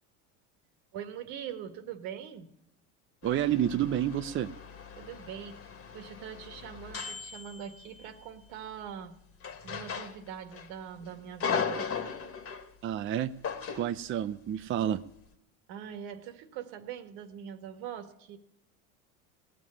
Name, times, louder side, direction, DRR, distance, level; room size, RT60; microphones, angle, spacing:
voice 1, 0.9-2.5 5.0-5.6 5.9-9.2 9.6-12.3 15.7-18.4, right 8 dB, 70° right, 7 dB, 1.8 m, -42 dB
sound 1, 3.2-8.2 9.4-10.7 11.0-12.7 13.4-14.0, left 6 dB, 35° left, 1.7 m, -37 dB
voice 2, 3.2-4.5 12.8-13.3 13.7-15.0, right 11 dB, 35° right, 9 dB, 0.6 m, -29 dB
18.0 x 7.3 x 9.8 m, 0.81 s
supercardioid pair, 105°, 38 cm